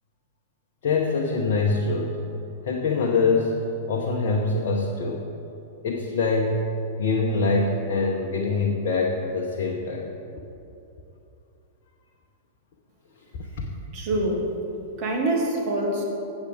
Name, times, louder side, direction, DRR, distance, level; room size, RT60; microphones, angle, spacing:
voice 1, 0.8-2.2 2.7-3.6 3.9-5.2 5.8-6.7 7.0-10.1 13.6-13.7, left 3 dB, 55° left, 0 dB, 0.8 m, -24 dB
voice 2, 13.9-14.5 15.0-16.0, right 1 dB, 45° right, -1 dB, 1.9 m, -25 dB
8.3 x 7.2 x 5.1 m, 2.8 s
figure-of-eight pair, 100°, 0 cm